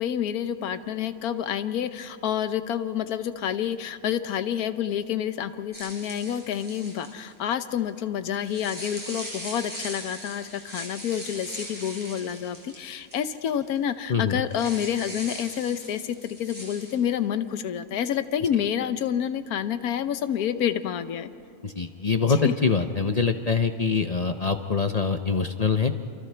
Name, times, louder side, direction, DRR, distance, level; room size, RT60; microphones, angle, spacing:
voice 1, 0.0-21.3 22.3-22.5, left 9 dB, 85° left, 11 dB, 1.3 m, -28 dB
sound 1, 5.7-7.3 8.3-13.5 13.7-13.8 14.5-16.9, equal, 10° right, 5.5 m, -40 dB
voice 2, 14.1-14.4 21.6-25.9, left 5 dB, 40° left, 7 dB, 0.5 m, -24 dB
28.0 x 28.0 x 3.4 m, 2.6 s
omnidirectional pair, 1.5 m